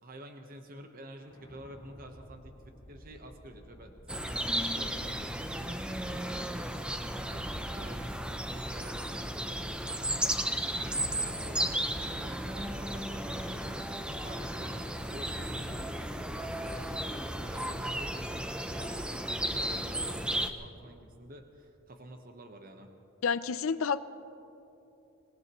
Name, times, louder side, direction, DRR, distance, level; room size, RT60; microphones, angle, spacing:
voice 1, 0.0-13.9 14.2-22.9, right 1 dB, 45° right, 4 dB, 1.0 m, -49 dB
sound 1, 1.2-12.3, equal, 25° left, 2.3 m, -56 dB
sound 2, 4.1-20.5, right 1 dB, 5° right, 0.6 m, -34 dB
voice 2, 23.2-24.0, left 6 dB, 80° left, 15 dB, 0.5 m, -29 dB
25.5 x 18.5 x 3.0 m, 2.9 s
head